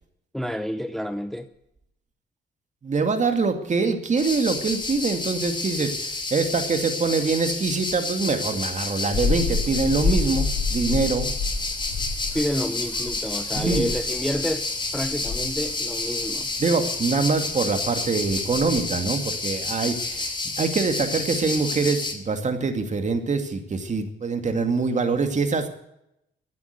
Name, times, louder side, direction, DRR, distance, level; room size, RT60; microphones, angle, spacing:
voice 1, 0.3-1.5 12.3-14.7 14.9-16.5, equal, ahead, 10 dB, 0.8 m, -29 dB
voice 2, 2.8-11.3 13.5-13.9 16.6-25.7, right 4 dB, 35° right, 6 dB, 2.3 m, -24 dB
sound 1, 4.2-22.1, left 3 dB, 25° left, 3.0 m, -30 dB
sound 2, 9.1-18.8, left 4 dB, 55° left, 8.0 m, -30 dB
14.5 x 9.4 x 8.1 m, 0.81 s
cardioid pair, 90°, 20 cm